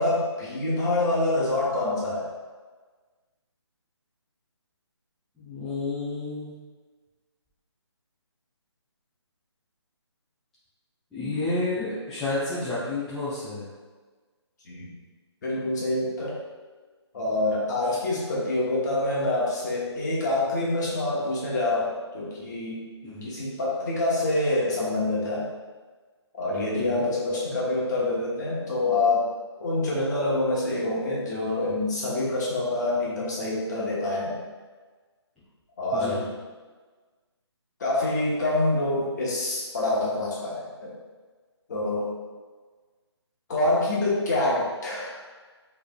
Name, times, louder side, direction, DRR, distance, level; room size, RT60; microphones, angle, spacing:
voice 1, 0.0-2.3 14.6-14.9 15.4-16.4 17.1-22.8 23.2-25.4 26.3-29.3 29.6-34.4 35.8-36.3 37.8-40.9 41.7-42.1 43.5-45.2, left 2 dB, 40° left, -6 dB, 1.2 m, -26 dB
voice 2, 5.4-6.5 11.1-13.7 23.0-23.3 26.8-27.0 35.9-36.1, left 2 dB, 5° left, -15 dB, 0.5 m, -30 dB
4.7 x 3.3 x 2.3 m, 1.4 s
figure-of-eight pair, 155°, 15 cm